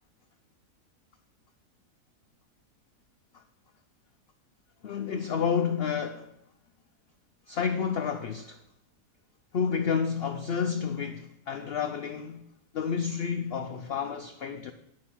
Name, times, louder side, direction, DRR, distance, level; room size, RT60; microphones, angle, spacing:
voice 1, 4.8-6.3 7.5-8.6 9.5-12.4 12.7-14.7, left 6 dB, 70° left, 0.5 m, -30 dB
9.7 x 6.4 x 5.7 m
omnidirectional pair, 1.7 m